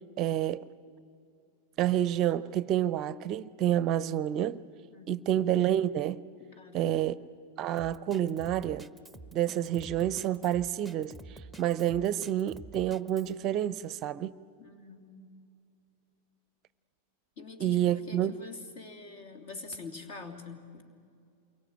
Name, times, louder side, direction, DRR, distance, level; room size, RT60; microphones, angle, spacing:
voice 1, 0.2-0.7 1.8-4.6 5.1-6.2 6.7-7.2 7.6-8.9 9.3-14.3 17.6-18.3, right 11 dB, 35° right, 0.6 m, -29 dB
voice 2, 4.9-5.3 6.4-7.1 14.6-15.3 17.4-20.8, left 3 dB, 55° left, 3.1 m, -45 dB
Drum kit, 7.8-13.3, right 2 dB, 5° left, 1.0 m, -48 dB
29.0 x 23.0 x 9.1 m
figure-of-eight pair, 90°, 0 cm